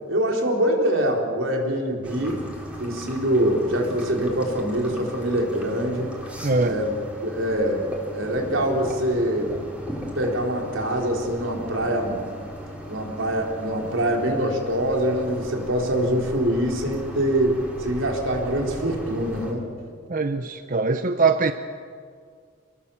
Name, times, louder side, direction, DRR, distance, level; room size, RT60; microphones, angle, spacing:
voice 1, 0.1-2.4 2.8-6.1 6.6-6.9 7.2-7.8 8.1-9.5 10.1-12.2 12.9-19.6, right 1 dB, 85° right, 1 dB, 4.4 m, -24 dB
sound 1, 2.0-19.5, equal, 5° right, 4.1 m, -37 dB
voice 2, 6.4-6.8 20.1-21.5, right 4 dB, 45° right, 8 dB, 0.8 m, -22 dB
27.5 x 21.5 x 7.3 m, 2.1 s
head